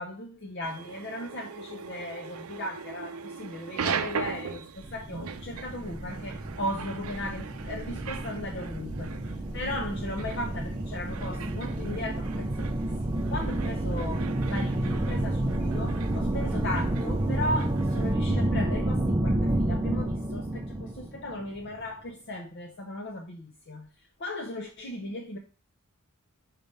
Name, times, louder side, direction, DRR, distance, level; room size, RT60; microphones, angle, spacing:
voice 1, 0.0-9.1 9.5-23.9 24.2-25.4, left 1 dB, 50° left, 0.7 m, -36 dB
sound 1, 0.6-18.1, right 6 dB, 75° right, 0.5 m, -40 dB
sound 2, 4.8-21.8, right 1 dB, 20° right, 0.5 m, -30 dB
5.8 x 3.3 x 5.2 m
head